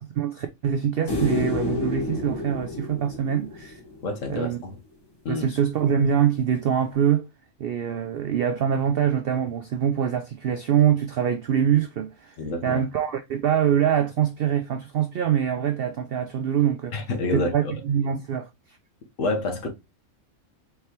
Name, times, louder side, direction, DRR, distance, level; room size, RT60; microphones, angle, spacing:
voice 1, 0.1-3.8 4.3-4.6 5.3-7.3 7.6-12.4 12.6-16.9 17.3-18.8, right 9 dB, 80° right, 0.5 m, -24 dB
sound 1, 1.1-4.3 6.9-7.0, left 2 dB, 20° left, 1.0 m, -29 dB
voice 2, 4.0-4.8 5.2-5.5 12.4-12.8 16.9-17.7 19.2-19.7, left 2 dB, 60° left, 1.3 m, -28 dB
4.5 x 3.3 x 2.8 m
omnidirectional pair, 1.5 m